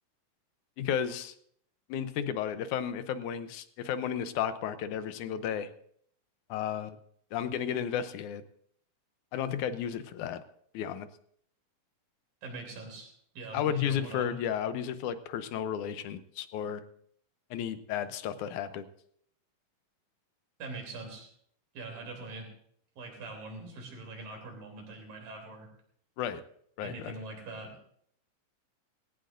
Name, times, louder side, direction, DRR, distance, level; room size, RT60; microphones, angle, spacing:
voice 1, 0.8-1.3 1.9-5.7 6.5-7.0 7.3-8.4 9.3-10.4 10.7-11.1 13.5-16.8 17.5-18.9 26.2-26.4 26.8-27.1, left 9 dB, 75° left, 11 dB, 2.0 m, -33 dB
voice 2, 12.4-14.3 20.6-21.3 21.7-22.5 23.0-25.7 26.8-27.9, right 3 dB, 85° right, 2 dB, 4.8 m, -43 dB
19.0 x 17.0 x 2.6 m, 0.66 s
omnidirectional pair, 3.8 m